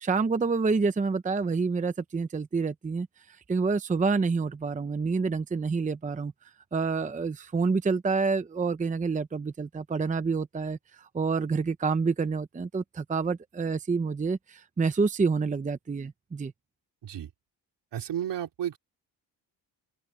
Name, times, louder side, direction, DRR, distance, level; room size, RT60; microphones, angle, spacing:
voice 1, 0.0-6.3 6.7-16.5, right 4 dB, 20° right, 0.7 m, -28 dB
voice 2, 17.9-18.8, right 10 dB, 75° right, 4.2 m, -32 dB
open air
wide cardioid pair, 155°, 42 cm